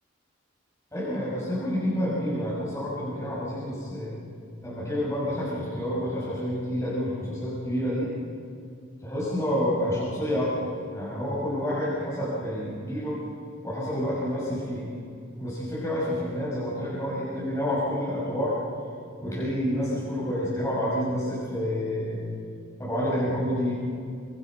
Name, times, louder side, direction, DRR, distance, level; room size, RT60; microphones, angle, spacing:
voice 1, 0.9-4.1 4.6-8.1 9.0-13.2 13.6-14.9 15.4-18.6 19.2-22.2 22.8-23.7, equal, 15° left, -8 dB, 6.6 m, -28 dB
26.0 x 26.0 x 6.2 m, 2.3 s
head